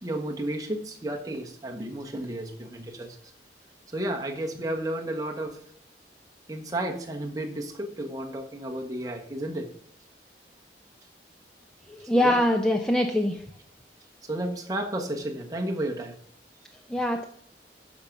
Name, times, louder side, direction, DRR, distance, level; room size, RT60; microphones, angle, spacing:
voice 1, 0.0-3.1 3.9-5.6 6.5-9.7 12.1-12.4 14.3-16.1, right 1 dB, 20° right, 2 dB, 1.3 m, -32 dB
voice 2, 11.9-13.4 16.9-17.2, left 1 dB, 5° left, 4 dB, 0.6 m, -23 dB
12.5 x 5.2 x 6.0 m, 0.63 s
head